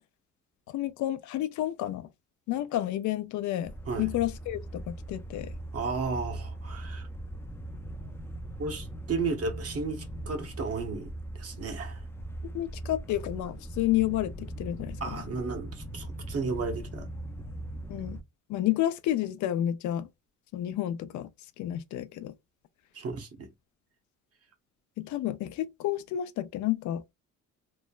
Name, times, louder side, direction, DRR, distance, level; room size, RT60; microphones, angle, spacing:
voice 1, 0.7-2.1 2.5-3.7 4.0-5.5 12.5-15.2 17.9-18.2 18.5-20.1 20.5-21.3 21.6-22.3 25.0-27.1, left 13 dB, 75° left, 0.4 m, -30 dB
sound 1, 3.6-18.2, right 1 dB, 10° left, 0.4 m, -40 dB
voice 2, 3.9-4.2 5.7-7.1 8.6-12.0 15.0-17.1 22.9-23.5, right 4 dB, 50° right, 0.9 m, -34 dB
3.1 x 2.1 x 2.3 m
cardioid pair, 90°, 30 cm